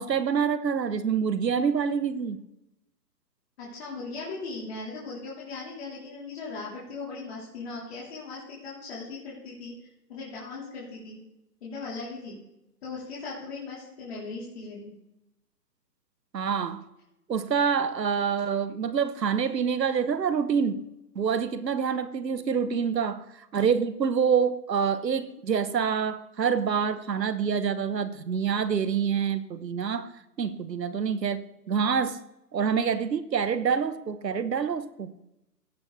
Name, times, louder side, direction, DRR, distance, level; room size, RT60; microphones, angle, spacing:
voice 1, 0.0-2.4 16.3-16.8 17.3-20.8 21.1-30.1 30.4-32.2 32.5-35.1, right 6 dB, 80° right, 13 dB, 1.2 m, -26 dB
voice 2, 3.6-9.7 10.1-11.2 11.6-12.4 12.8-14.9, left 3 dB, 40° left, -6 dB, 3.3 m, -38 dB
17.0 x 6.3 x 3.2 m, 0.86 s
hypercardioid pair, 150°, 50 cm